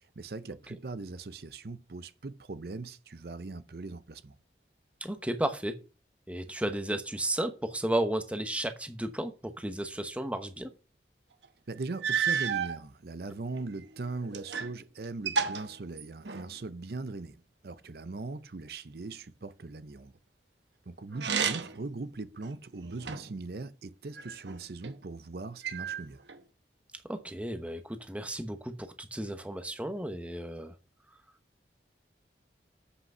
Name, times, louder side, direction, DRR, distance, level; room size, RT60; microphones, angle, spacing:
voice 1, 0.0-4.4 11.7-20.1 20.9-26.2, right 3 dB, 60° right, 0.6 m, -40 dB
voice 2, 5.0-5.7 6.3-10.7 27.1-30.7, right 1 dB, 5° right, 0.9 m, -33 dB
sound 1, 11.4-11.5 12.0-12.8 13.5-14.8 15.0-16.6 21.1-21.9 22.4-23.4 24.1-24.9 25.6-26.4, right 6 dB, 85° right, 1.1 m, -32 dB
8.2 x 5.8 x 5.5 m
head